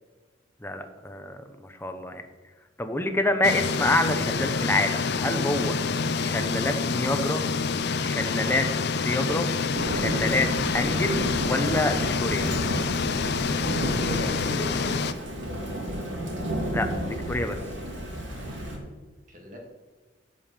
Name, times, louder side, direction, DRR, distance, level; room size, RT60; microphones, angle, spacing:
voice 1, 0.6-2.2 2.8-5.8 6.2-7.4 8.0-8.7 8.9-9.5 9.9-10.5 10.7-12.5 16.7-17.6, left 1 dB, 10° left, 7 dB, 0.9 m, -27 dB
sound 1, 3.4-15.1, left 5 dB, 60° left, 0.5 m, -27 dB
Thunder / Rain, 9.8-18.8, equal, 70° right, 2.7 m, -32 dB
voice 2, 13.9-15.0 19.3-19.6, left 1 dB, 45° right, 1 dB, 2.0 m, -38 dB
9.9 x 5.2 x 7.4 m, 1.3 s
head